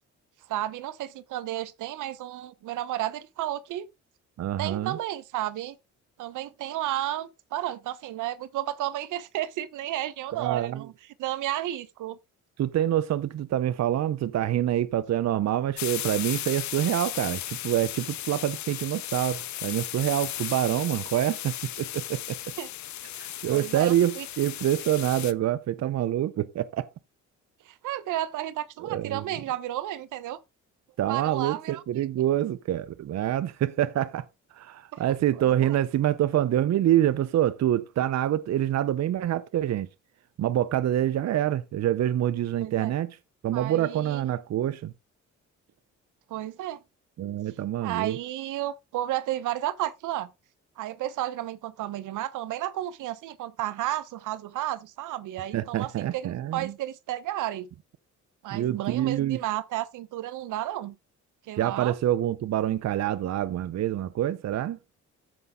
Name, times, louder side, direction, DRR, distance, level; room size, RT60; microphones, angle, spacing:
voice 1, 0.5-3.9 4.6-5.8 6.2-10.9 11.2-12.2 22.6-22.7 23.5-24.3 27.6-30.4 31.1-31.8 34.9-35.0 35.4-35.8 42.6-42.9 43.5-44.2 46.3-46.8 47.8-50.3 50.8-57.7 58.4-60.9 61.5-62.0, right 13 dB, 85° right, 1.0 m, -32 dB
voice 2, 4.4-5.0 10.4-10.9 12.6-22.5 23.2-26.9 28.8-29.2 31.0-34.2 34.5-39.9 40.4-43.2 43.4-44.9 47.2-48.2 55.5-56.7 58.5-59.4 61.6-64.8, right 12 dB, 60° right, 0.7 m, -26 dB
sound 1, 15.8-25.3, left 13 dB, 70° left, 0.8 m, -35 dB
14.0 x 5.4 x 3.7 m
cardioid pair, 90°, 30 cm